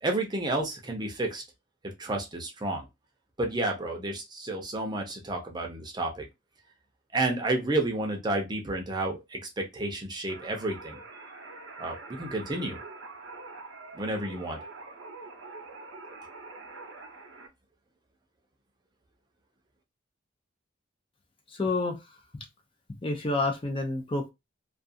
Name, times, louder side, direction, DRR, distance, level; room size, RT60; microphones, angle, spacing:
voice 1, 0.0-1.4 1.8-2.9 3.4-6.3 7.1-11.0 11.8-12.8 13.9-14.6, right 2 dB, 25° right, 0.6 m, -31 dB
sound 1, 10.3-17.5, right 3 dB, 90° right, 0.7 m, -45 dB
voice 2, 21.5-22.0 23.0-24.3, left 2 dB, 30° left, 0.5 m, -28 dB
2.4 x 2.3 x 2.5 m
head